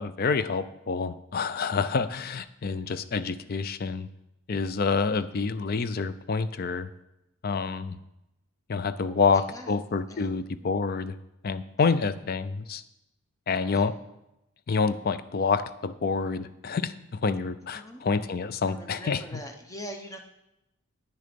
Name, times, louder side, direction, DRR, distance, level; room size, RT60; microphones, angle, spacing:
voice 1, 0.0-4.1 4.5-6.9 7.4-8.0 8.7-11.1 11.4-12.8 13.5-13.9 14.7-19.4, left 5 dB, 40° left, 13 dB, 0.4 m, -28 dB
voice 2, 9.1-9.8 10.1-10.3 11.8-11.9 13.5-13.9 17.7-18.1 18.7-20.2, equal, 15° left, 4 dB, 0.8 m, -43 dB
9.3 x 6.5 x 5.2 m, 0.88 s
head